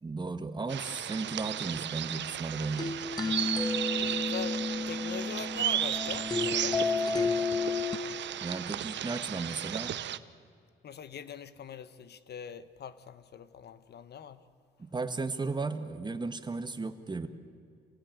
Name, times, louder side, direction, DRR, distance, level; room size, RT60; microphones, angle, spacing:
voice 1, 0.0-3.0 8.4-10.0 14.8-17.3, right 3 dB, 20° right, 1.6 m, -35 dB
sound 1, 0.7-10.2, right 11 dB, 65° right, 0.8 m, -35 dB
sound 2, 2.8-8.0, left 4 dB, 20° left, 1.3 m, -31 dB
voice 2, 4.2-7.5 10.8-14.4, left 7 dB, 55° left, 1.2 m, -43 dB
27.0 x 18.0 x 9.4 m
cardioid pair, 90°, 20 cm